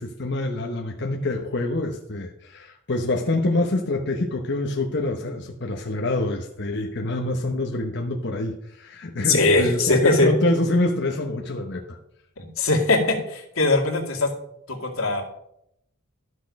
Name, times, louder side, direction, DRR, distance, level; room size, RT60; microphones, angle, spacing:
voice 1, 0.0-12.0, left 2 dB, 55° left, 2 dB, 0.9 m, -26 dB
voice 2, 9.2-10.3 12.4-14.3 14.7-15.2, left 2 dB, 90° left, 1 dB, 2.2 m, -21 dB
12.5 x 6.3 x 5.3 m, 0.78 s
head